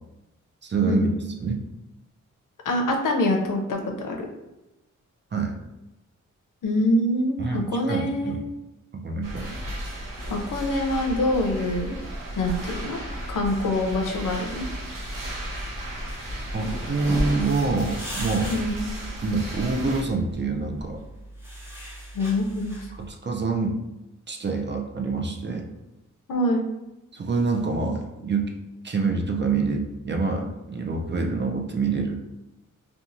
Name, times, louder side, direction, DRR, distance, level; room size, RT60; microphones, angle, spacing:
voice 1, 0.6-1.1 1.4-1.6 5.3-5.5 7.4-8.4 8.9-9.5 16.5-18.5 19.2-21.0 23.0-23.8 24.3-25.7 27.1-28.5 28.8-32.2, right 4 dB, 35° right, 2 dB, 0.4 m, -26 dB
voice 2, 2.7-4.3 6.6-8.4 10.3-12.0 12.4-13.0 13.3-14.6 18.5-18.8 22.1-22.8 26.3-26.7, left 1 dB, 75° left, 2 dB, 0.6 m, -25 dB
sound 1, 9.2-20.0, equal, 80° right, 0.7 m, -33 dB
sound 2, 16.9-23.1, equal, 5° right, 0.9 m, -41 dB
2.8 x 2.3 x 2.5 m, 0.96 s
cardioid pair, 55°, 32 cm